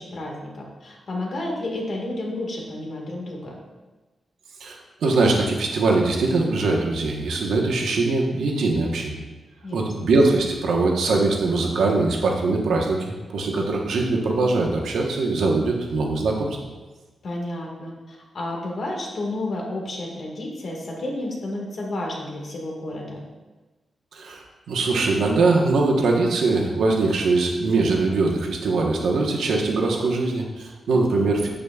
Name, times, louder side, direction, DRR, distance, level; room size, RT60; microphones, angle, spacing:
voice 1, 0.0-3.6 9.6-10.1 17.2-23.2 31.1-31.3, left 1 dB, 50° left, -1 dB, 1.8 m, -31 dB
voice 2, 4.6-9.2 9.7-16.6 24.1-31.5, right 3 dB, 90° right, 0 dB, 1.1 m, -22 dB
8.8 x 8.2 x 2.4 m, 1.2 s
wide cardioid pair, 160°, 0 cm